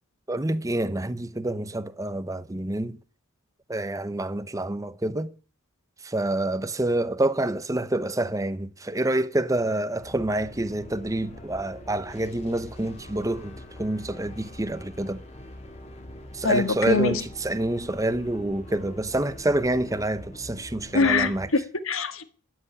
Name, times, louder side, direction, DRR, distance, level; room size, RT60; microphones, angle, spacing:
voice 1, 0.3-3.0 3.7-5.3 6.0-13.5 13.8-15.2 16.3-21.5, right 1 dB, 15° right, 0.7 m, -27 dB
sound 1, 10.0-21.5, left 1 dB, 30° left, 2.8 m, -44 dB
voice 2, 16.4-17.2 20.9-22.2, left 3 dB, 70° left, 1.7 m, -23 dB
12.5 x 7.9 x 10.0 m
head